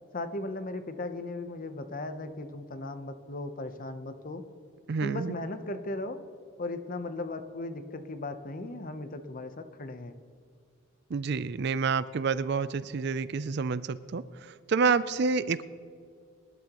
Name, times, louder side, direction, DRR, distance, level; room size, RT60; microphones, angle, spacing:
voice 1, 0.1-4.4 5.0-6.2 6.6-10.2, left 2 dB, 40° left, 9 dB, 0.8 m, -37 dB
voice 2, 4.9-5.3 11.1-15.6, right 5 dB, 50° right, 15 dB, 0.4 m, -28 dB
24.5 x 12.0 x 3.0 m, 2.2 s
head